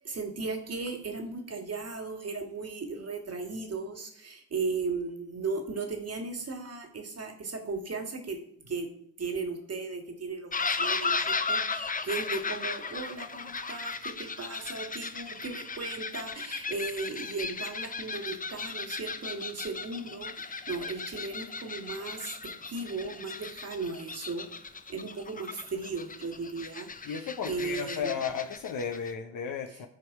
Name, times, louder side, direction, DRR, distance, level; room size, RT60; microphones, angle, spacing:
voice 1, 0.0-8.9 9.2-24.5 24.9-28.1 29.7-29.8, right 4 dB, 35° right, 5 dB, 2.0 m, -36 dB
sound 1, 10.5-29.1, left 4 dB, 20° left, 0.7 m, -36 dB
voice 2, 27.0-29.9, left 7 dB, 45° left, 5 dB, 1.0 m, -34 dB
12.5 x 4.5 x 4.7 m, 0.67 s
hypercardioid pair, 50°, 44 cm